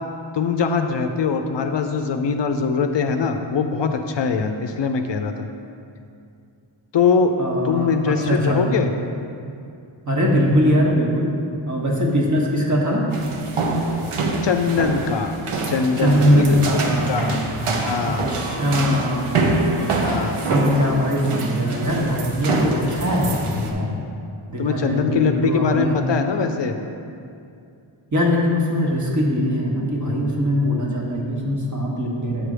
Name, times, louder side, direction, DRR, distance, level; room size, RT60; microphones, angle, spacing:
voice 1, 0.3-5.5 6.9-7.3 7.6-8.9 14.4-15.3 15.7-16.6 17.1-17.4 17.9-18.2 20.0-20.3 24.6-26.7, left 5 dB, 60° left, 6 dB, 0.5 m, -22 dB
voice 2, 7.4-8.6 10.0-11.3 11.6-13.1 16.0-17.7 18.0-19.6 20.4-23.9 24.5-26.0 28.1-32.5, equal, 35° right, -3 dB, 1.2 m, -21 dB
sound 1, 13.1-23.7, right 2 dB, 85° right, 0.8 m, -25 dB
7.7 x 3.3 x 6.1 m, 2.5 s
wide cardioid pair, 85°, 49 cm